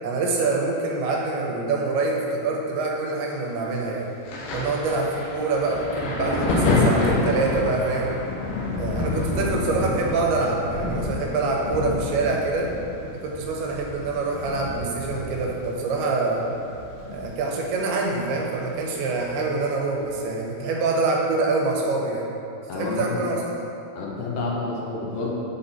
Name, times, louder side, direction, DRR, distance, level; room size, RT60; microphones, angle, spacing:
voice 1, 0.0-4.1 4.5-8.2 8.8-12.7 13.2-16.4 17.1-22.3 22.7-23.6, right 3 dB, 85° right, -1 dB, 2.7 m, -25 dB
Thunder, 4.2-17.6 17.9-19.2 20.0-20.2, left 2 dB, 70° left, 2.3 m, -28 dB
voice 2, 22.7-23.2 24.0-25.3, left 3 dB, 85° left, -3 dB, 2.9 m, -29 dB
7.4 x 4.3 x 4.0 m, 2.7 s
omnidirectional pair, 4.5 m